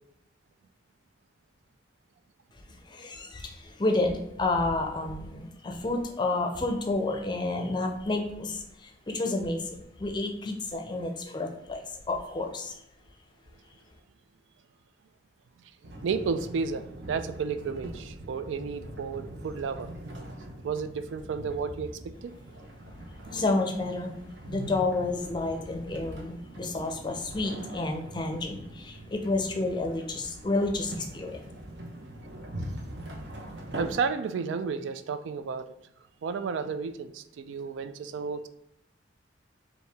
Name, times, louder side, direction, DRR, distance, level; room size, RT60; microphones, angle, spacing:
voice 1, 2.8-12.8 23.3-24.2 24.5-31.5, left 2 dB, 25° left, 4 dB, 0.5 m, -30 dB
sound 1, 15.8-34.0, right 1 dB, 70° right, 0.8 m, -42 dB
voice 2, 16.0-19.9 20.6-22.4 33.8-35.7 36.2-38.5, right 5 dB, 85° right, 10 dB, 0.3 m, -32 dB
4.6 x 2.7 x 3.3 m, 0.80 s
head